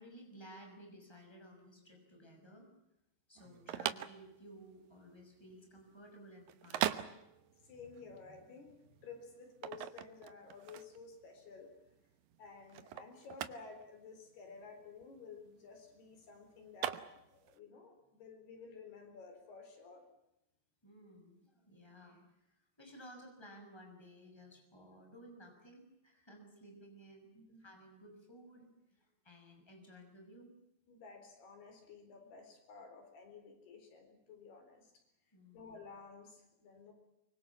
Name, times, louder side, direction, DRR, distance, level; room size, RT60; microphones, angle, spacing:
voice 1, 0.0-2.7 3.3-6.9 20.8-27.3 27.6-30.5 35.3-35.7, equal, 5° left, 3 dB, 6.2 m, -56 dB
sound 1, 3.4-17.6, right 12 dB, 70° right, 2.4 m, -42 dB
voice 2, 7.6-11.7 12.4-20.1 27.4-27.6 30.9-34.9 35.5-36.9, left 4 dB, 70° left, 6 dB, 6.1 m, -53 dB
25.0 x 24.5 x 7.3 m, 0.87 s
omnidirectional pair, 4.8 m